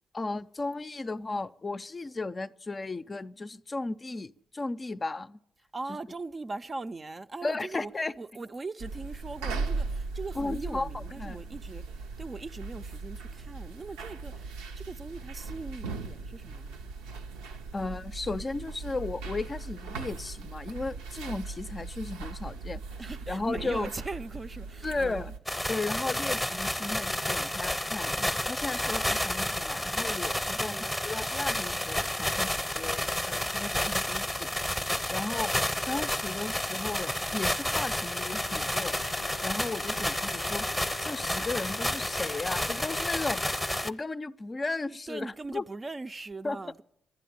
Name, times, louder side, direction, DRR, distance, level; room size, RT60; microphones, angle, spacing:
voice 1, 0.1-5.4 7.4-8.1 10.3-11.4 17.7-22.8 23.3-23.9 24.8-25.3 25.7-34.5 35.1-35.5 35.9-38.9 39.4-40.7 41.0-43.4 43.8-45.6 46.4-46.6, left 3 dB, 30° left, 0.5 m, -35 dB
voice 2, 5.7-7.9 8.2-16.8 23.0-25.3 30.6-31.0 45.1-46.8, right 3 dB, 30° right, 0.5 m, -40 dB
sound 1, 8.8-25.4, right 4 dB, 85° right, 0.7 m, -38 dB
sound 2, 25.5-43.9, left 1 dB, 5° left, 0.8 m, -31 dB
sound 3, 38.1-43.9, left 9 dB, 90° left, 0.4 m, -46 dB
12.0 x 10.0 x 8.7 m
hypercardioid pair, 50°, 0 cm